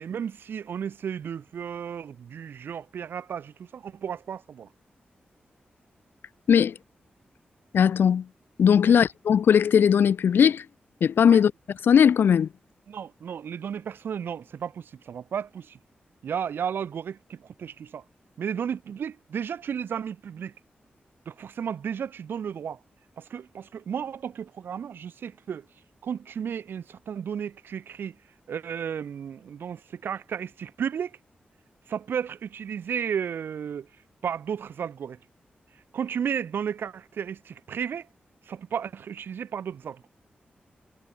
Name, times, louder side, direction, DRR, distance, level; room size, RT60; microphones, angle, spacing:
voice 1, 0.0-4.7 8.9-9.0 11.3-11.4 12.9-15.8 16.2-18.0 18.4-20.5 21.3-22.8 23.2-25.7 26.0-28.2 28.5-31.2 31.9-33.9 34.2-35.2 35.9-38.1 38.5-40.1, right 8 dB, 85° right, 0.6 m, -33 dB
voice 2, 7.7-8.2 8.6-10.6 11.0-11.5 11.9-12.5, left 8 dB, 85° left, 0.4 m, -19 dB
cardioid pair, 60°, 4 cm